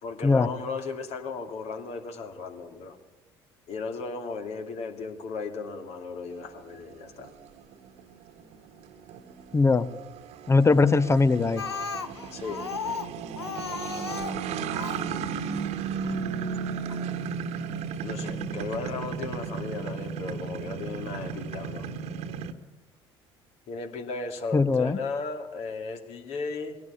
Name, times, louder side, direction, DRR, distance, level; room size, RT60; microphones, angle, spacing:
voice 1, 0.0-3.0 3.7-7.3 12.3-12.6 18.0-21.9 23.7-26.8, left 4 dB, 50° left, 5 dB, 2.6 m, -36 dB
sound 1, 6.4-22.5, right 6 dB, 55° right, 1.5 m, -35 dB
voice 2, 9.5-9.9 10.5-11.6 24.5-25.0, left 3 dB, 20° left, 16 dB, 1.0 m, -20 dB
Speech, 11.6-15.1 16.0-16.1 16.5-16.6 16.9-17.0, left 6 dB, 85° left, 0.8 m, -35 dB
20.5 x 17.0 x 8.5 m, 1.1 s
figure-of-eight pair, 55°, 13 cm